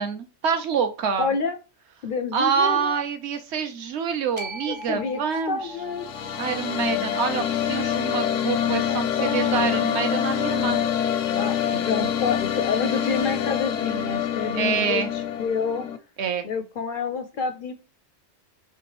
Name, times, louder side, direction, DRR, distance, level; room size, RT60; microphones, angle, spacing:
voice 1, 0.0-1.3 2.3-5.6 6.4-10.8 14.6-15.1 16.2-16.4, right 6 dB, 65° right, 8 dB, 1.0 m, -26 dB
voice 2, 1.2-1.6 2.0-3.0 4.7-6.1 8.9-9.9 11.3-15.9 16.4-17.7, left 5 dB, 60° left, 8 dB, 0.5 m, -29 dB
sound 1, 4.4-10.6, equal, 35° right, 0.5 m, -44 dB
sound 2, 5.7-16.0, left 9 dB, 85° left, 1.0 m, -26 dB
3.4 x 2.9 x 3.1 m, 0.33 s
omnidirectional pair, 1.3 m